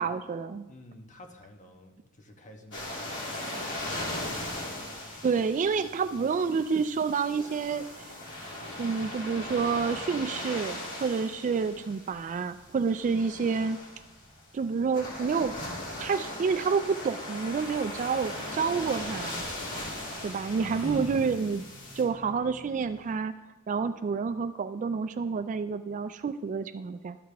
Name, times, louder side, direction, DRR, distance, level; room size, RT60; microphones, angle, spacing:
voice 1, 0.0-0.6 3.1-3.2 5.2-8.2 8.8-13.8 14.5-15.6 16.0-19.4 20.2-21.6 22.0-23.3 23.7-27.2, right 5 dB, 35° right, 11 dB, 0.3 m, -29 dB
voice 2, 0.7-3.2 20.9-21.3, left 1 dB, 35° left, 3 dB, 1.1 m, -49 dB
sound 1, 2.7-22.0, left 1 dB, 60° left, 2.6 m, -39 dB
Engine, 16.6-23.1, left 1 dB, 75° left, 2.8 m, -46 dB
12.5 x 6.6 x 3.4 m, 1.0 s
head